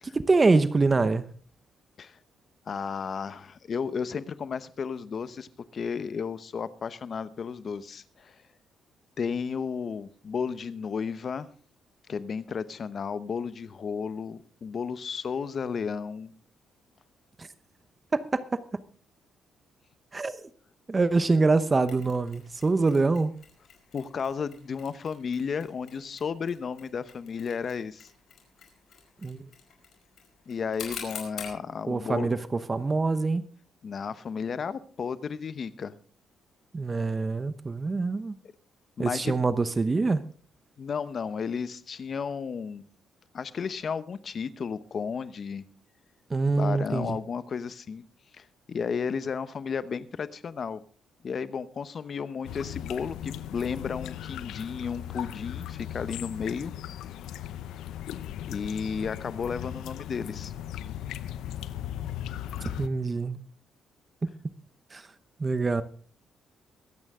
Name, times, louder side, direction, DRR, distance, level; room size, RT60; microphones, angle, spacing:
voice 1, 0.1-1.2 17.4-17.5 18.1-18.6 20.1-20.4 20.9-23.3 29.2-29.4 31.9-33.4 36.7-38.3 39.0-40.2 46.3-47.2 62.8-63.4 64.2-64.3 64.9-65.0 65.4-65.8, right 3 dB, 25° right, 0.8 m, -25 dB
voice 2, 2.7-8.4 9.2-11.5 12.1-16.3 23.9-28.1 30.5-32.4 33.8-36.0 39.0-39.3 40.8-42.8 43.3-45.6 46.6-48.0 48.4-50.8 51.2-56.7 58.5-60.5, left 6 dB, 50° left, 0.9 m, -33 dB
Mechanisms, 21.9-31.6, left 6 dB, 65° left, 4.9 m, -47 dB
sound 1, 52.4-62.9, left 11 dB, 85° left, 0.7 m, -37 dB
23.0 x 9.0 x 3.7 m
cardioid pair, 90°, 0 cm